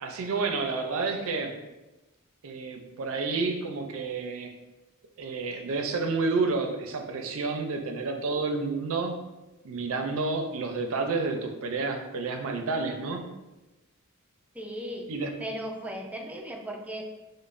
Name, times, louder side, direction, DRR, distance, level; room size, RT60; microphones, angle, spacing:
voice 1, 0.0-1.5 2.4-4.5 5.2-9.1 9.6-13.3 15.1-15.3, right 3 dB, 65° right, 4 dB, 0.5 m, -30 dB
voice 2, 14.5-15.1 15.4-17.0, equal, 5° right, 1 dB, 0.3 m, -36 dB
5.1 x 2.1 x 2.5 m, 1.1 s
head